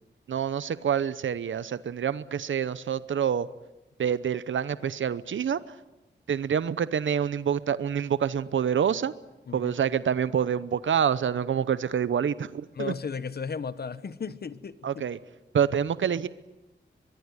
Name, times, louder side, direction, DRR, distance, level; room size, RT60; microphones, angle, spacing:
voice 1, 0.3-3.5 4.0-5.6 6.3-9.1 9.5-12.9 14.8-15.2 15.5-16.3, right 8 dB, 80° right, 15 dB, 0.8 m, -27 dB
voice 2, 12.8-15.0, left 6 dB, 55° left, 14 dB, 1.1 m, -35 dB
24.0 x 21.5 x 9.8 m, 0.99 s
wide cardioid pair, 145°, 20 cm